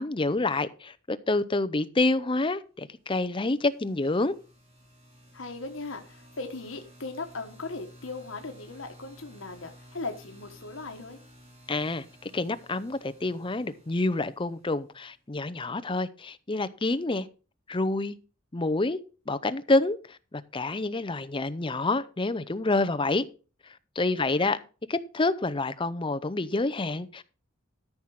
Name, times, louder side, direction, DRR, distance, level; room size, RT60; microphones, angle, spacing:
voice 1, 0.0-4.3 11.7-17.3 17.7-18.2 18.5-19.0 19.3-23.2 24.0-24.6 24.9-27.2, left 2 dB, 25° left, 0.7 m, -28 dB
sound 1, 3.3-15.1, equal, 30° right, 4.1 m, -54 dB
voice 2, 5.3-11.2 24.2-24.6, left 3 dB, 80° left, 1.3 m, -38 dB
13.5 x 5.9 x 4.7 m
head